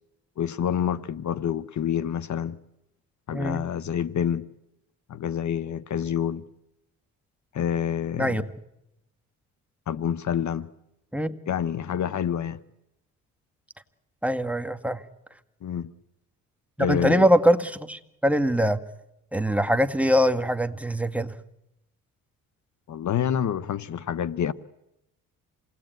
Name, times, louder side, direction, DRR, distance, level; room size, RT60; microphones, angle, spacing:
voice 1, 0.4-2.6 3.3-4.5 5.1-6.4 7.5-8.4 9.9-10.7 11.5-12.6 15.6-15.9 16.8-17.3 22.9-24.5, left 9 dB, 55° left, 1.0 m, -27 dB
voice 2, 14.2-15.0 16.8-18.8 19.3-21.3, equal, 5° right, 1.7 m, -23 dB
27.5 x 19.5 x 9.2 m
cardioid pair, 75°, 35 cm